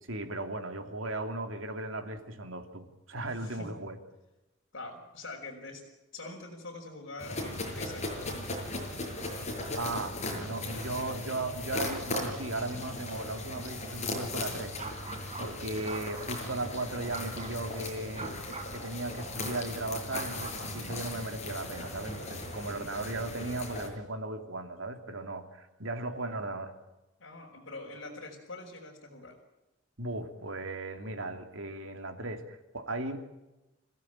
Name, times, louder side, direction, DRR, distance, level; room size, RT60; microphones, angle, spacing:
voice 1, 0.1-4.0 9.8-14.7 15.4-18.3 18.7-26.7 30.0-33.2, right 2 dB, 80° right, 6 dB, 3.0 m, -36 dB
voice 2, 3.2-3.7 4.7-5.8 6.1-8.6 20.6-21.0 27.2-29.4, left 2 dB, 65° left, -3 dB, 5.2 m, -44 dB
sound 1, 7.2-23.9, left 2 dB, 35° left, 7.0 m, -38 dB
sound 2, 14.8-15.5 15.8-16.8 17.1-17.7 18.1-22.4, right 4 dB, 35° right, 3.9 m, -45 dB
26.5 x 16.5 x 9.0 m, 1.0 s
head